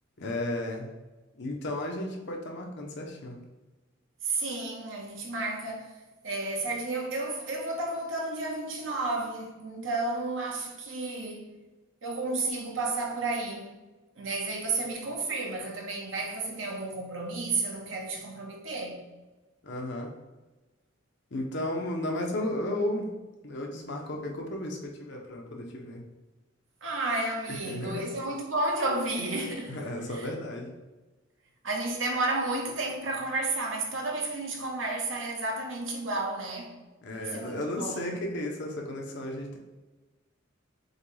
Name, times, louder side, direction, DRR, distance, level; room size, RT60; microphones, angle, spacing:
voice 1, 0.2-0.9 1.3-3.4 19.6-20.1 21.3-23.1 23.4-26.0 27.5-28.1 29.7-30.7 37.0-39.6, left 1 dB, 60° left, 0.8 m, -34 dB
voice 2, 4.2-6.0 6.2-11.5 12.0-13.7 14.2-19.0 26.8-29.8 30.1-30.3 31.6-36.8 37.2-38.2, right 2 dB, 70° right, 0.9 m, -32 dB
6.4 x 2.3 x 3.2 m
head